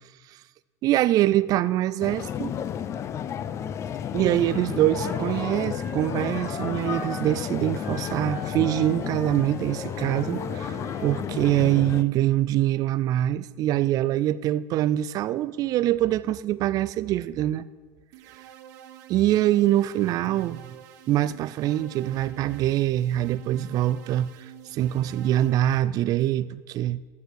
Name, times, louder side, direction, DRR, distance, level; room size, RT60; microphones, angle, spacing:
voice 1, 0.8-2.6 4.1-17.6 19.1-20.8 21.1-24.3 24.7-27.0, right 13 dB, 45° right, 0.4 m, -24 dB
sound 1, 2.0-12.0, left 9 dB, 30° left, 0.4 m, -32 dB
Wind instrument woodwind instrument, 4.4-7.4 7.8-11.2, right 2 dB, 15° right, 4.4 m, -41 dB
sound 2, 18.1-25.8, right 12 dB, 80° right, 1.1 m, -48 dB
12.0 x 8.3 x 6.3 m
cardioid pair, 145°, 9 cm